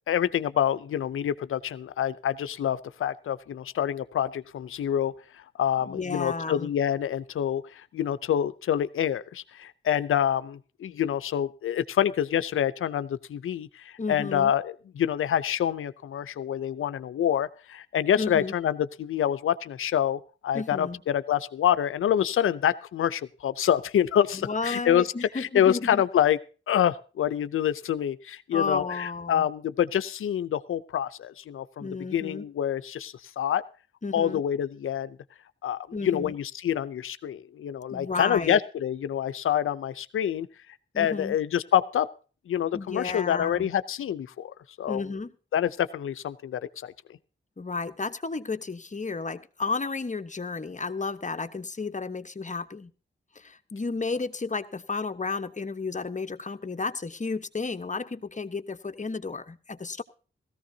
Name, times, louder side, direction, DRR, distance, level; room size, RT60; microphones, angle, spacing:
voice 1, 0.1-5.1 5.6-26.4 26.7-33.6 34.1-35.2 35.6-40.5 41.0-42.1 42.5-45.0 45.5-46.9, left 10 dB, 85° left, 14 dB, 0.6 m, -27 dB
voice 2, 5.9-6.7 14.0-14.5 18.2-18.5 20.5-21.0 24.3-26.0 28.5-29.5 31.8-32.4 34.0-34.4 35.9-36.3 37.9-38.6 40.9-41.4 42.7-43.7 44.9-45.3 47.6-52.9 53.3-60.0, left 4 dB, 35° left, 9 dB, 1.1 m, -32 dB
17.0 x 14.5 x 2.8 m, 0.36 s
cardioid pair, 45°, 21 cm